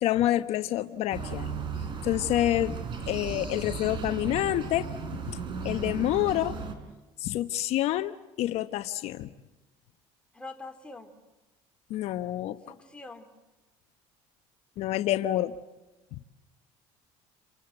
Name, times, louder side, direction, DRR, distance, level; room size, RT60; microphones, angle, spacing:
voice 1, 0.0-1.5 2.0-2.8 3.1-4.9 5.3-6.6 7.2-9.3 11.9-12.6 14.8-15.6, left 14 dB, 65° left, 10 dB, 1.0 m, -28 dB
sound 1, 1.1-6.7, right 5 dB, 45° right, 4.4 m, -35 dB
voice 2, 10.3-11.1 12.6-13.3, left 3 dB, 10° left, 4 dB, 3.3 m, -44 dB
29.0 x 24.0 x 7.9 m, 1.1 s
cardioid pair, 115°, 12 cm